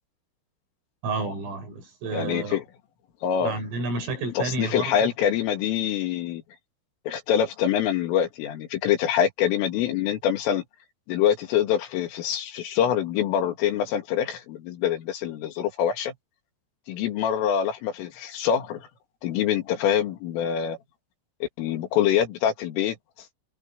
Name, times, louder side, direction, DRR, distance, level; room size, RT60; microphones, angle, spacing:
voice 1, 1.0-2.6 3.4-5.1, right 3 dB, 85° right, 9.8 m, -30 dB
voice 2, 2.1-2.6 3.2-3.5 4.4-6.4 7.1-10.6 11.1-16.1 16.9-18.9 19.2-20.8 21.4-23.0, left 9 dB, 85° left, 5.0 m, -25 dB
omnidirectional pair, 5.7 m